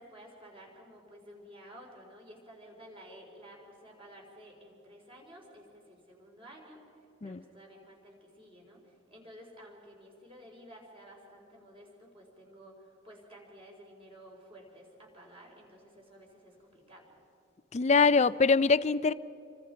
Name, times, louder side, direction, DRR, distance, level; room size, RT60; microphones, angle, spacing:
voice 1, 0.0-6.8 7.2-17.1, equal, 25° right, 0 dB, 4.6 m, -53 dB
voice 2, 17.7-19.1, left 4 dB, 35° left, 16 dB, 0.4 m, -23 dB
28.5 x 24.5 x 5.1 m, 2.7 s
head